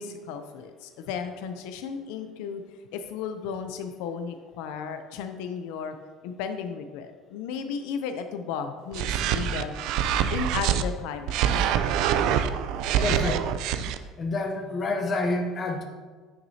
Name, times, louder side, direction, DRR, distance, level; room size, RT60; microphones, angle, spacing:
voice 1, 0.0-2.6 2.9-5.9 6.2-9.7 10.3-11.4, left 6 dB, 85° left, 8 dB, 0.6 m, -34 dB
sound 1, 8.9-10.8 11.3-14.0, right 9 dB, 55° right, 0.3 m, -25 dB
voice 2, 13.0-13.4 14.2-15.8, left 2 dB, 25° left, 3 dB, 0.7 m, -28 dB
9.3 x 6.0 x 2.8 m, 1.5 s
cardioid pair, 180°, 0 cm